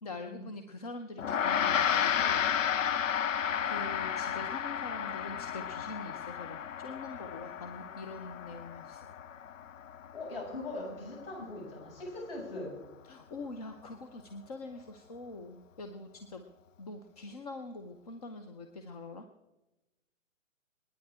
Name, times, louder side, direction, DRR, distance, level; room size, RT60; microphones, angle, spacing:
voice 1, 0.0-2.6 3.6-9.1 13.1-16.5 16.8-19.3, left 2 dB, 30° left, 7 dB, 0.8 m, -44 dB
Gong, 1.2-10.8, left 8 dB, 70° left, 0.7 m, -32 dB
voice 2, 10.1-12.7, left 2 dB, 45° left, -2 dB, 7.3 m, -40 dB
28.5 x 10.0 x 3.7 m, 1.0 s
hypercardioid pair, 165°, 39 cm